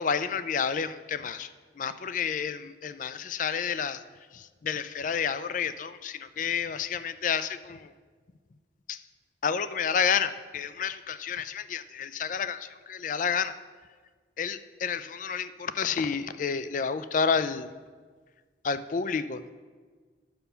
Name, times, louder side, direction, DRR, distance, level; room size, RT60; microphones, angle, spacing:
voice 1, 0.0-1.5 1.8-4.0 4.6-7.9 8.9-9.0 9.4-13.5 14.4-17.7 18.6-19.5, left 6 dB, 45° left, 13 dB, 0.4 m, -30 dB
10.5 x 6.8 x 5.6 m, 1.5 s
head